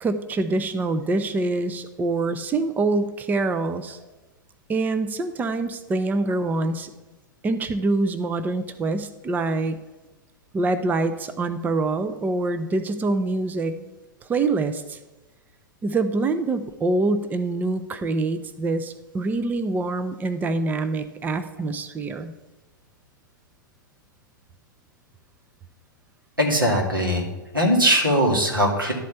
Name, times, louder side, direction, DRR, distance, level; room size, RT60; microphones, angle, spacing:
voice 1, 0.0-4.0 4.7-6.9 7.4-9.8 10.5-13.7 14.2-15.0 15.8-22.3, right 3 dB, 15° right, 10 dB, 0.6 m, -25 dB
voice 2, 26.4-27.3 27.5-28.9, equal, 90° right, -2 dB, 2.4 m, -20 dB
11.5 x 4.2 x 8.0 m, 1.1 s
figure-of-eight pair, 95°, 11 cm